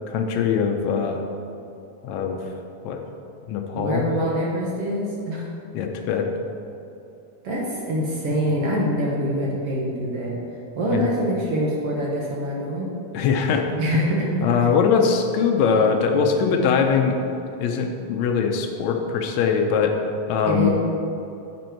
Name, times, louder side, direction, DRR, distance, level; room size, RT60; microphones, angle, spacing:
voice 1, 0.1-1.2 2.0-2.4 2.8-3.0 3.5-4.1 5.7-6.3 10.9-11.1 13.1-13.7 13.9-14.0 14.4-17.2 17.6-20.0 20.3-20.7, left 6 dB, 80° left, 3 dB, 1.6 m, -21 dB
voice 2, 3.7-5.5 7.4-10.4 10.7-12.9 13.8-14.7 20.5-20.7, equal, 60° right, -3 dB, 1.7 m, -25 dB
9.5 x 7.5 x 4.5 m, 2.7 s
omnidirectional pair, 3.9 m